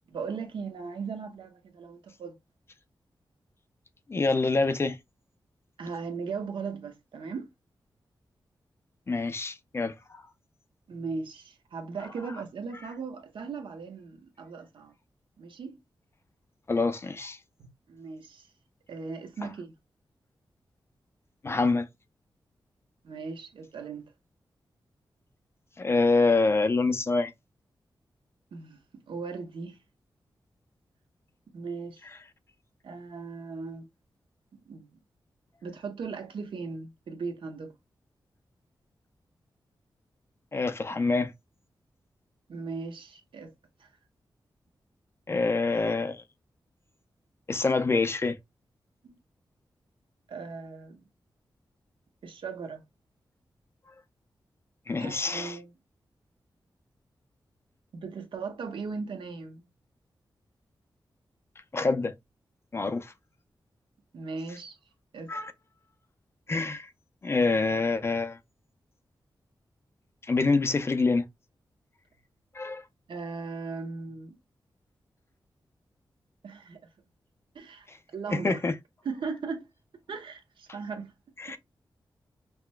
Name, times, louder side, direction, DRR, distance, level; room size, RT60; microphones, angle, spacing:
voice 1, 0.1-2.4 5.8-7.5 10.9-14.9 15.4-15.8 17.6-18.5 18.9-19.7 23.0-24.1 28.5-29.8 31.5-32.0 32.8-33.8 34.7-34.9 35.6-37.7 42.5-43.5 43.8-43.9 49.0-49.1 50.3-51.1 52.2-52.8 55.0-55.7 57.9-59.6 64.1-64.8 65.1-65.3 73.1-74.4 76.4-76.9 77.5-78.6 79.0-79.7 80.1-81.1 81.5-81.6, right 4 dB, 85° right, 0.9 m, -38 dB
voice 2, 4.1-5.0 9.1-10.2 16.7-17.4 21.4-21.9 25.8-27.3 40.5-41.3 45.3-46.2 47.5-48.4 54.9-55.6 61.7-62.1 62.7-63.1 65.3-65.5 66.5-66.9 67.2-68.4 70.3-71.2 72.5-72.8 77.9-78.0 78.3-78.7 81.4-81.6, left 3 dB, 30° left, 0.4 m, -26 dB
5.8 x 2.1 x 2.2 m
wide cardioid pair, 155°, 8 cm